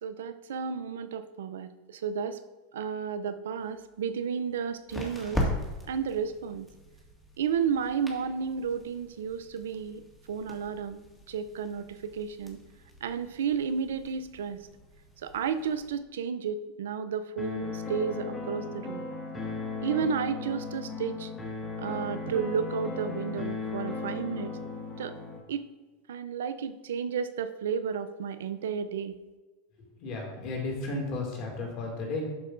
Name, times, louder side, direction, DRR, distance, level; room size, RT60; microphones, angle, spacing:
voice 1, 0.0-2.4 2.7-5.4 5.9-6.7 7.4-10.0 10.3-11.0 11.3-12.6 13.0-14.6 15.2-19.0 19.8-21.3 21.8-24.6 25.0-25.2 25.5-25.7 26.1-29.1, right 7 dB, 80° right, 12 dB, 0.5 m, -32 dB
sound 1, 3.6-16.0, left 1 dB, 5° left, 1.9 m, -40 dB
sound 2, 17.4-25.4, left 4 dB, 20° left, 1.8 m, -36 dB
voice 2, 30.0-32.3, left 2 dB, 50° left, -1 dB, 2.2 m, -33 dB
11.5 x 5.3 x 2.6 m, 1.2 s
hypercardioid pair, 95°, 0 cm